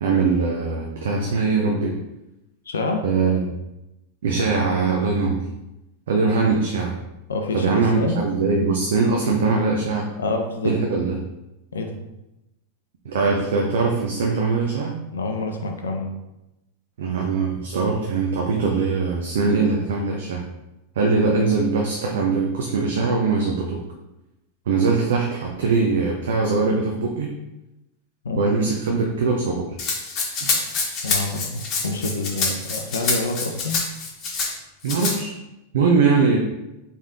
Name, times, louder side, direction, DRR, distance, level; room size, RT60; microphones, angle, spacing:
voice 1, 0.0-2.0 3.0-3.6 4.2-5.5 6.1-7.0 7.5-10.1 10.6-11.2 13.0-15.0 17.0-20.4 21.0-23.8 24.7-27.4 28.4-29.8 30.4-30.5 34.8-35.3 35.7-36.4, right 4 dB, 60° right, 0 dB, 0.6 m, -21 dB
voice 2, 2.7-3.0 7.3-8.2 10.2-10.7 11.7-11.9 15.1-16.1 28.2-28.4 31.0-33.8, left 2 dB, 70° left, 4 dB, 0.6 m, -27 dB
Rattle (instrument), 29.8-34.5 34.9-35.2, left 4 dB, 35° left, 1.1 m, -26 dB
4.2 x 3.6 x 3.6 m, 0.94 s
figure-of-eight pair, 90°, 0 cm